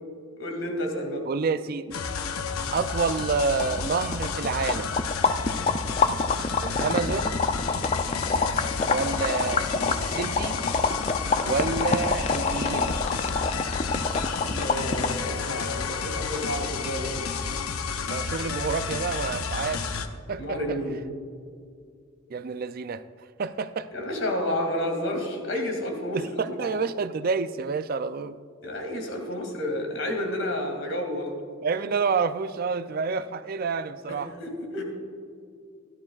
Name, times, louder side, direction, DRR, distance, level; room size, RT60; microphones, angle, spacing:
voice 1, 0.4-1.2 14.5-17.2 20.4-21.0 23.9-26.7 28.6-31.4 34.1-34.8, left 1 dB, 65° left, 2 dB, 2.3 m, -30 dB
voice 2, 1.3-2.0 2.7-4.9 6.6-7.4 8.9-10.6 11.4-13.0 18.1-19.8 20.3-20.8 22.3-23.0 23.4-23.9 26.1-28.4 31.6-34.3, right 4 dB, 45° right, 12 dB, 0.3 m, -28 dB
sound 1, 1.9-20.1, left 5 dB, 90° left, 0.7 m, -31 dB
sound 2, 3.3-3.4 3.5-15.3, left 4 dB, 30° left, 0.4 m, -27 dB
17.0 x 12.0 x 2.4 m, 2.3 s
head